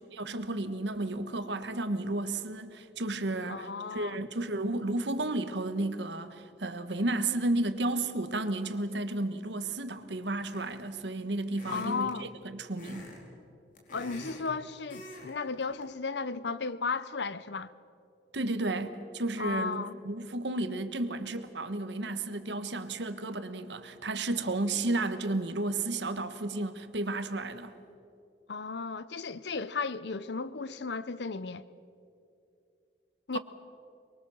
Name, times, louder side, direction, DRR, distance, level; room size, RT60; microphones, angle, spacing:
voice 1, 0.0-13.1 18.3-27.7 33.3-33.4, right 2 dB, 85° right, 1.4 m, -33 dB
voice 2, 3.5-4.2 11.7-12.3 13.9-17.7 19.4-19.9 28.5-31.6 33.3-33.4, left 4 dB, 75° left, 0.8 m, -35 dB
sound 1, 10.5-10.9 11.5-12.2 12.8-13.2 13.5-14.5 14.9-15.3 15.6-15.8, left 1 dB, 50° left, 4.4 m, -46 dB
24.5 x 22.5 x 7.2 m
head